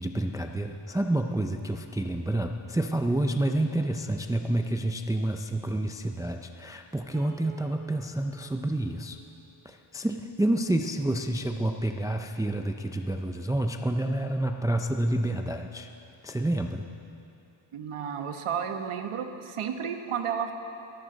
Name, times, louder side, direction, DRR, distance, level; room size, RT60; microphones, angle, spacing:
voice 1, 0.0-9.2 9.7-15.9 16.2-16.8, right 1 dB, 5° right, 5 dB, 0.4 m, -29 dB
Piano, 7.1-10.4, right 6 dB, 65° right, 1.7 m, -53 dB
voice 2, 17.7-20.5, right 7 dB, 85° right, 6 dB, 1.3 m, -32 dB
22.0 x 14.5 x 4.0 m, 2.7 s
wide cardioid pair, 150°, 50 cm